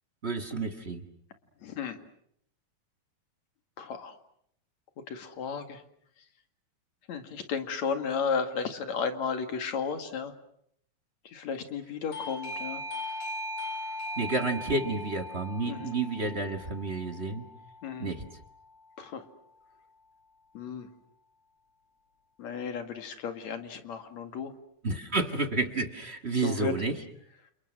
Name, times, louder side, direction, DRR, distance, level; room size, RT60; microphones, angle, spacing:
voice 1, 0.2-1.0 14.2-17.5 18.0-18.3 24.8-26.9, right 3 dB, 30° right, 7 dB, 1.3 m, -30 dB
voice 2, 1.6-2.0 3.8-4.2 5.1-5.8 7.1-10.3 11.2-12.8 15.7-15.9 17.8-18.1 19.0-19.3 20.5-20.9 22.4-24.5 26.4-26.8, left 6 dB, 65° left, 8 dB, 3.3 m, -33 dB
Doorbell, 12.1-18.6, left 1 dB, 85° left, 4.6 m, -39 dB
29.5 x 29.0 x 6.3 m, 0.69 s
omnidirectional pair, 3.5 m